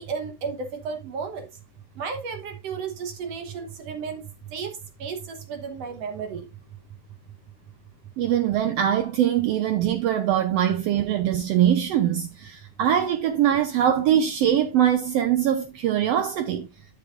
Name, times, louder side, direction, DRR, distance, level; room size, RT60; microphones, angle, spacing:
voice 1, 0.0-1.5 2.0-6.5, right 5 dB, 65° right, 1.9 m, -33 dB
voice 2, 8.2-16.7, right 10 dB, 80° right, 1.4 m, -22 dB
12.5 x 5.9 x 2.5 m
omnidirectional pair, 3.5 m